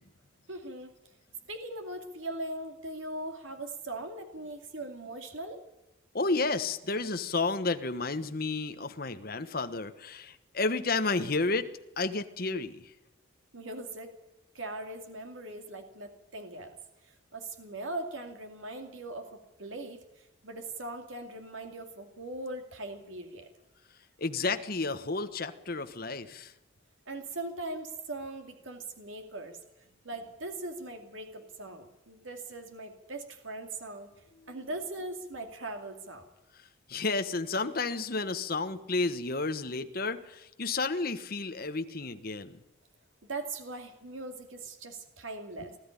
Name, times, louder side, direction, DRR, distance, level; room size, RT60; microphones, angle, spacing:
voice 1, 0.5-0.9 1.5-5.6 13.5-14.2 14.5-16.8 17.3-23.5 27.1-29.6 30.0-34.1 34.5-36.3 43.2-45.7, right 2 dB, 80° right, 5 dB, 2.6 m, -40 dB
voice 2, 6.1-11.7 12.0-12.9 24.2-26.5 34.4-34.6 36.5-42.6 45.6-45.7, left 3 dB, 50° left, 8 dB, 1.3 m, -31 dB
20.0 x 13.5 x 9.9 m, 0.89 s
head